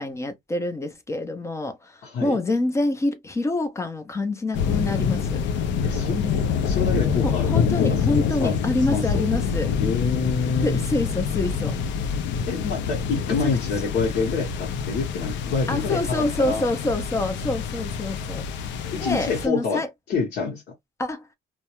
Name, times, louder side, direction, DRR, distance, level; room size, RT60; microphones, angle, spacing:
voice 1, 0.0-5.4 7.2-9.7 10.6-11.8 13.3-13.5 15.7-18.4 19.0-19.9 21.0-21.3, left 2 dB, 15° left, 0.4 m, -26 dB
voice 2, 2.0-2.4 5.8-8.6 8.9-9.0 9.8-10.8 12.5-16.6 18.9-19.8 20.1-20.6, left 5 dB, 60° left, 0.8 m, -27 dB
sound 1, 4.5-19.5, left 6 dB, 85° left, 0.5 m, -26 dB
2.2 x 2.1 x 2.9 m
cardioid pair, 165°, 19 cm